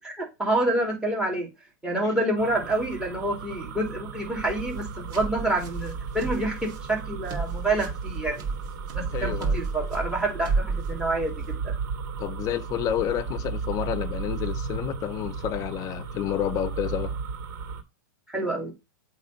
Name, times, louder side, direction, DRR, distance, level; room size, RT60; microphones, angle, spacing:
voice 1, 0.0-1.5 1.8-8.4 8.9-11.7 18.3-18.7, right 2 dB, 5° right, 2.7 m, -28 dB
sound 1, 2.4-17.8, right 5 dB, 70° right, 2.1 m, -35 dB
sound 2, 4.6-11.5, right 4 dB, 35° right, 2.1 m, -32 dB
voice 2, 9.1-9.6 12.2-17.1, left 11 dB, 30° left, 0.6 m, -30 dB
8.1 x 3.2 x 5.2 m
supercardioid pair, 140°, 11 cm